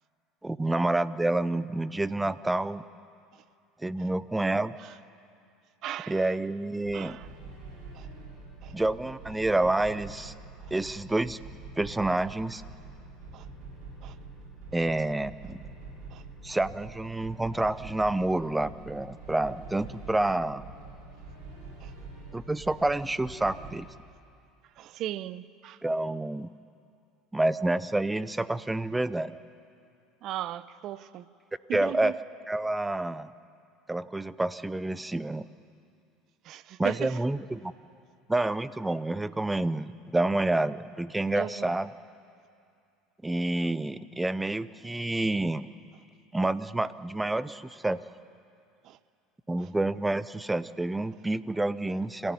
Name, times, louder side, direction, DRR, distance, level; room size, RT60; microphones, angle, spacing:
voice 1, 0.4-2.8 3.8-4.7 6.1-7.2 8.7-10.3 10.7-11.4 11.8-12.6 14.7-15.6 16.4-20.6 22.3-23.9 25.8-26.5 27.3-29.3 31.7-32.1 32.5-33.3 33.9-35.4 36.8-37.7 38.3-41.9 43.2-45.6 46.3-48.0 49.5-52.3, right 2 dB, 10° right, 0.7 m, -28 dB
voice 2, 5.8-6.3 6.9-7.3 7.9-8.1 8.6-8.7 13.3-13.5 14.0-14.1 16.1-16.2 21.8-21.9 24.8-25.8 30.2-31.2 31.7-32.1 36.4-37.2 41.3-41.8 48.8-49.0 49.6-49.7, right 13 dB, 55° right, 0.7 m, -37 dB
sound 1, 6.8-23.8, right 3 dB, 80° right, 6.7 m, -45 dB
26.0 x 15.0 x 9.6 m
supercardioid pair, 105°, 0 cm